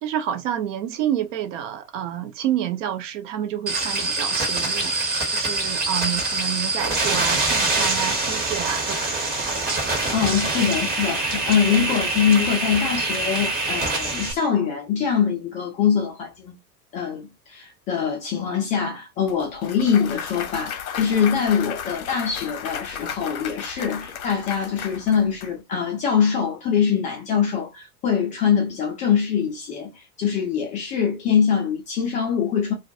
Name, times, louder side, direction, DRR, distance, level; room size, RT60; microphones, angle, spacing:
voice 1, 0.0-4.9 5.3-9.3, right 10 dB, 55° right, 0.6 m, -29 dB
sound 1, 3.7-14.3, right 2 dB, 20° right, 0.9 m, -24 dB
voice 2, 9.9-16.6 16.9-32.7, left 7 dB, 20° left, 0.3 m, -23 dB
Clapping / Cheering / Applause, 19.3-25.5, left 8 dB, 60° left, 0.7 m, -34 dB
2.3 x 2.2 x 2.6 m
figure-of-eight pair, 85°, 47 cm